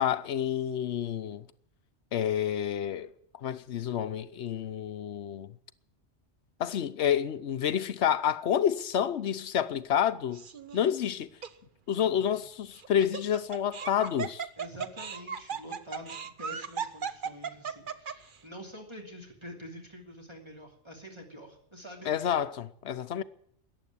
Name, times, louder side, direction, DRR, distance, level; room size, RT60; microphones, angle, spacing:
voice 1, 0.0-1.4 2.1-3.1 3.4-5.5 6.6-10.4 10.7-11.3 11.9-14.5 22.1-23.2, left 9 dB, 70° left, 1.1 m, -29 dB
Laughter, 10.3-10.8 11.4-11.5 12.8-18.4, right 6 dB, 50° right, 1.0 m, -36 dB
voice 2, 14.6-22.1, equal, 25° right, 2.9 m, -46 dB
14.5 x 10.0 x 9.8 m
omnidirectional pair, 1.2 m